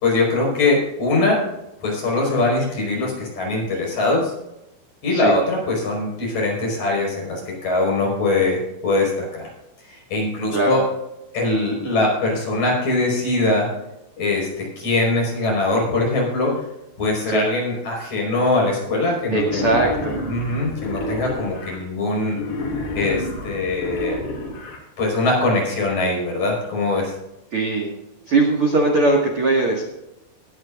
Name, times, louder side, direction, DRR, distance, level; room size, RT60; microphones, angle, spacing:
voice 1, 0.0-1.4 1.8-4.3 5.0-9.5 9.8-10.8 11.3-13.7 14.2-16.6 17.0-19.9 20.3-22.4 22.9-24.2 25.0-27.1, left 2 dB, 40° left, -2 dB, 6.2 m, -22 dB
Wild animals, 19.3-21.8 22.3-24.8, left 1 dB, 70° left, 5.0 m, -29 dB
voice 2, 19.3-20.2 27.5-27.9 28.3-29.8, right 2 dB, 50° right, 0 dB, 1.8 m, -19 dB
20.5 x 11.0 x 2.6 m, 0.89 s
omnidirectional pair, 5.2 m